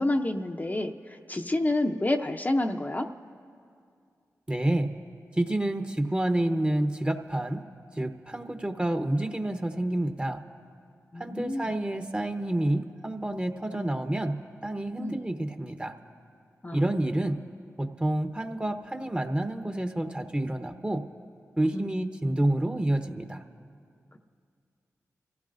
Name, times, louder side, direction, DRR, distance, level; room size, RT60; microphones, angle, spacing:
voice 1, 0.0-3.1 11.1-11.7 15.0-15.2 16.6-16.8 21.7-22.0 24.1-24.2, left 1 dB, 25° left, 4 dB, 0.6 m, -29 dB
voice 2, 4.5-4.9 5.4-7.6 8.0-10.4 11.2-15.9 16.7-17.4 17.8-21.0 21.6-23.4, right 1 dB, 20° right, 7 dB, 0.9 m, -28 dB
26.0 x 15.5 x 2.6 m, 2.3 s
cardioid pair, 45°, 6 cm